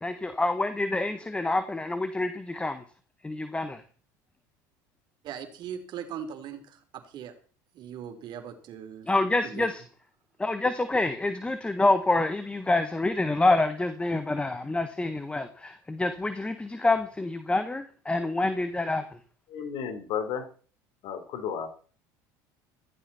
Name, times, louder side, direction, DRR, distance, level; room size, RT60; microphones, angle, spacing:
voice 1, 0.0-2.8 3.2-3.8 9.1-9.8 10.4-19.0, left 2 dB, 10° left, 10 dB, 1.4 m, -27 dB
voice 2, 5.2-7.3 7.7-9.1 9.4-9.7, right 8 dB, 55° right, 7 dB, 3.6 m, -40 dB
voice 3, 19.5-20.4 21.0-21.7, left 7 dB, 65° left, 7 dB, 4.0 m, -33 dB
15.0 x 15.0 x 4.3 m, 0.41 s
supercardioid pair, 95°, 9 cm